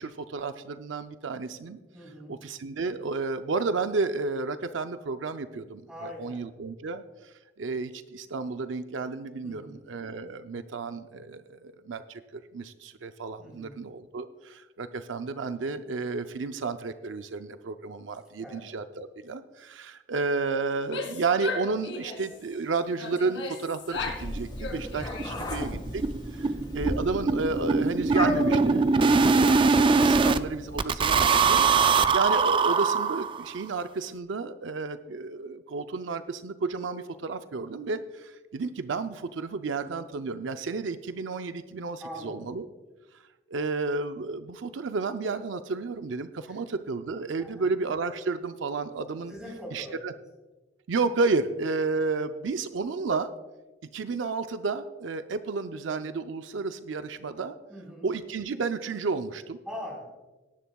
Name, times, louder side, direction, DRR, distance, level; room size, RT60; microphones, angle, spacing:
voice 1, 0.0-1.8 2.3-26.0 26.7-42.7 43.5-49.3 49.7-50.1 50.9-53.3 53.9-57.6 58.0-59.6, right 4 dB, 80° right, 10 dB, 0.5 m, -32 dB
voice 2, 1.9-2.3 5.9-6.4 9.4-9.8 13.4-13.8 18.4-18.6 25.2-25.7 26.3-26.8 42.0-42.5 46.5-46.6 47.4-47.7 49.3-50.0 57.7-58.1 59.7-60.1, equal, 5° right, -2 dB, 4.2 m, -42 dB
Female speech woman speaking / Yell, 20.7-22.4 23.0-24.3 24.6-25.6, left 4 dB, 80° left, 2.3 m, -36 dB
sound 1, 23.5-23.6 23.9-24.0 24.4-24.5 24.8-24.9 25.2-30.4 30.8-33.6, right 4 dB, 25° right, 0.3 m, -22 dB
Meow, 23.9-30.8, left 1 dB, 25° left, 1.6 m, -36 dB
18.5 x 10.5 x 2.3 m, 1.2 s
head